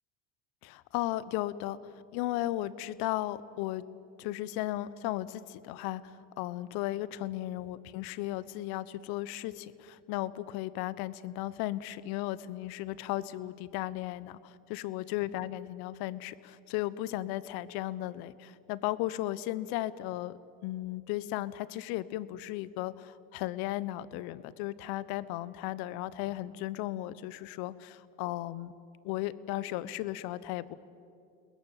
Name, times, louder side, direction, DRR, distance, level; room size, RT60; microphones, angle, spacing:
voice 1, 0.6-1.8 2.1-3.8 4.2-28.7 29.0-30.7, left 15 dB, 65° left, 17 dB, 1.1 m, -35 dB
29.5 x 20.5 x 9.0 m, 2.5 s
hypercardioid pair, 70°, 40 cm